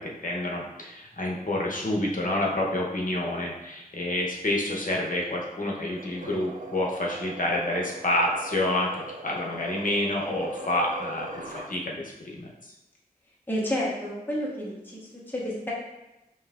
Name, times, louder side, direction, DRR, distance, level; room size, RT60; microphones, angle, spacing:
voice 1, 0.0-12.5, left 1 dB, 60° left, -2 dB, 0.9 m, -28 dB
sound 1, 6.0-11.7, right 2 dB, 55° right, 0.5 m, -40 dB
voice 2, 13.5-15.7, equal, 10° left, -5 dB, 1.2 m, -30 dB
5.3 x 2.8 x 2.5 m, 0.96 s
wide cardioid pair, 45°, 16 cm